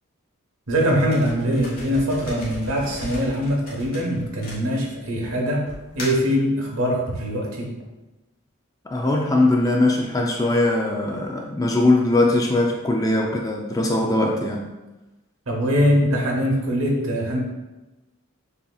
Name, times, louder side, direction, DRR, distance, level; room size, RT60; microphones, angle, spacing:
voice 1, 0.7-5.7 5.9-7.7 15.5-17.4, equal, 75° right, 0 dB, 1.0 m, -22 dB
sound 1, 0.8-5.1 5.7-6.3, left 1 dB, 40° left, 1.3 m, -37 dB
voice 2, 8.9-14.7, left 2 dB, 15° left, 1 dB, 0.4 m, -20 dB
6.8 x 2.8 x 2.3 m, 1.1 s
head